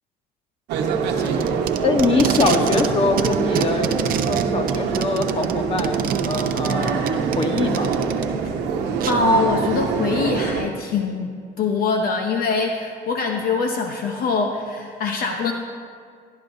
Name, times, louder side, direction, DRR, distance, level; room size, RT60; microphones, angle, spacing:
sound 1, 0.7-10.6, right 6 dB, 85° right, 1.0 m, -24 dB
Packing tape duct tape, 1.2-2.9 3.2-8.2 9.0-9.1, right 10 dB, 55° right, 0.6 m, -27 dB
voice 1, 1.8-7.1 7.4-7.9, left 3 dB, 35° left, 4 dB, 1.2 m, -23 dB
voice 2, 9.1-15.5, left 4 dB, 60° left, 3 dB, 0.9 m, -23 dB
18.0 x 11.0 x 2.7 m, 2.1 s
cardioid pair, 110°, 17 cm